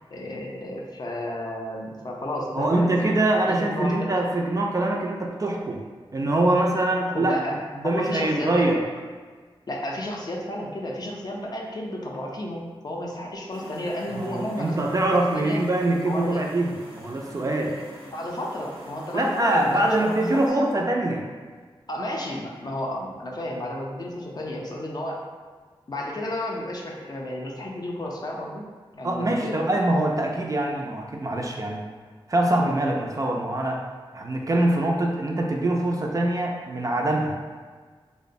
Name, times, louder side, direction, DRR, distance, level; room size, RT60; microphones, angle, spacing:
voice 1, 0.1-2.9 3.4-4.1 7.0-7.6 7.8-8.8 9.7-14.9 15.1-15.6 16.1-16.5 17.6-17.7 18.1-20.4 21.9-25.2 25.9-28.6 28.9-29.6, left 1 dB, 45° left, -2 dB, 0.4 m, -32 dB
voice 2, 2.5-5.8 6.1-7.4 7.8-8.8 14.1-17.7 19.1-21.2 29.0-31.8 32.3-33.8 34.1-37.4, right 1 dB, 35° right, 0 dB, 0.3 m, -24 dB
sound 1, 13.5-20.5, equal, 90° right, 0.9 m, -46 dB
2.9 x 2.0 x 2.5 m, 1.5 s
wide cardioid pair, 80°, 10 cm